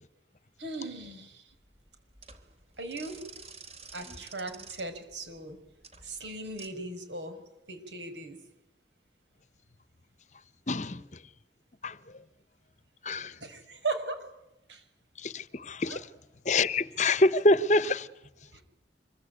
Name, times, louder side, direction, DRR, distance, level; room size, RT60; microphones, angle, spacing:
voice 1, 0.6-1.4 2.8-3.2 3.9-5.6 6.0-7.4 7.7-8.4 13.4-14.2 14.7-14.8 15.9-16.0 18.5-18.6, right 3 dB, 90° right, 5.9 m, -37 dB
sound 1, 1.5-6.7, right 4 dB, 35° right, 3.4 m, -49 dB
voice 2, 10.7-11.0 11.8-11.9 13.0-13.3 15.2-16.0 16.5-18.1, left 2 dB, 40° left, 0.9 m, -25 dB
26.0 x 23.5 x 9.4 m
head